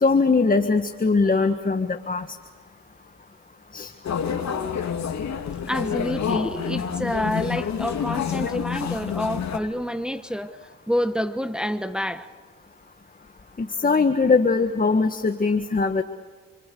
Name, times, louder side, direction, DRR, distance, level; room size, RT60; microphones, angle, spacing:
voice 1, 0.0-2.3 3.7-3.9 13.6-16.0, left 4 dB, 30° left, 6 dB, 1.8 m, -21 dB
sound 1, 4.0-9.6, left 7 dB, 65° left, 2.9 m, -28 dB
voice 2, 5.7-10.6 10.9-12.3, equal, 5° right, 9 dB, 1.2 m, -28 dB
29.5 x 25.0 x 6.9 m, 1.4 s
cardioid pair, 85°, 30 cm